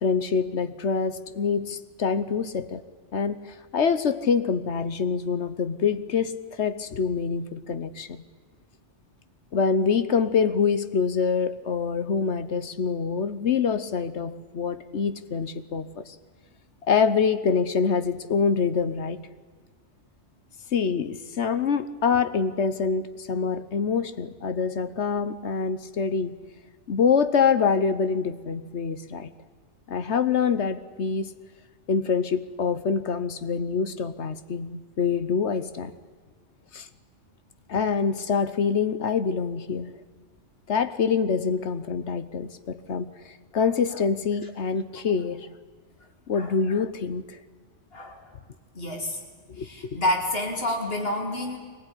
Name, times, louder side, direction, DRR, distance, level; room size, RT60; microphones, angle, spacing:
voice 1, 0.0-2.8 3.1-8.2 9.5-16.1 16.8-19.2 20.7-26.4 26.9-29.3 29.9-31.3 31.9-35.9 36.7-36.9 37.7-39.9 40.7-45.5 46.3-47.4 49.6-49.7, left 5 dB, 70° left, 12 dB, 1.3 m, -25 dB
voice 2, 47.9-48.2 48.7-49.2 49.5-51.6, left 1 dB, 55° left, 2 dB, 3.5 m, -29 dB
22.5 x 19.5 x 9.9 m, 1.5 s
omnidirectional pair, 1.2 m